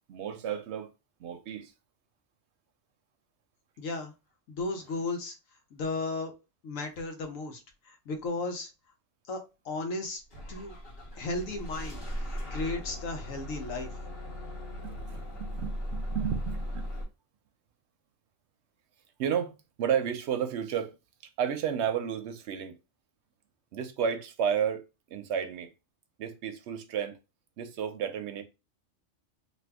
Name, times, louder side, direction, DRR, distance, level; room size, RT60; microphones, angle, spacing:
voice 1, 0.1-0.9 1.2-1.7 14.8-16.9 19.2-20.9 21.4-22.8 23.7-24.8 25.1-25.7 26.2-27.2 27.6-28.4, right 8 dB, 65° right, 0.8 m, -32 dB
voice 2, 3.8-4.1 4.5-5.3 5.7-6.3 6.6-7.6 7.9-8.7 9.3-10.2 10.5-10.7 11.1-12.0 12.3-13.9, left 3 dB, 85° left, 1.1 m, -34 dB
Bus / Engine starting, 10.3-17.0, equal, 50° left, 1.2 m, -37 dB
2.6 x 2.6 x 3.4 m
omnidirectional pair, 1.3 m